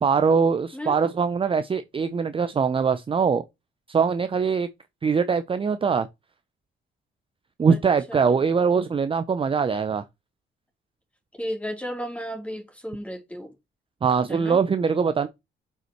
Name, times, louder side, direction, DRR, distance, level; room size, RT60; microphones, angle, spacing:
voice 1, 0.0-3.4 3.9-4.7 5.0-6.1 7.6-10.0 14.0-15.3, right 5 dB, 25° right, 0.6 m, -22 dB
voice 2, 11.4-13.5 14.3-14.6, equal, 5° left, 3.3 m, -33 dB
7.6 x 5.5 x 3.1 m
cardioid pair, 90°, 20 cm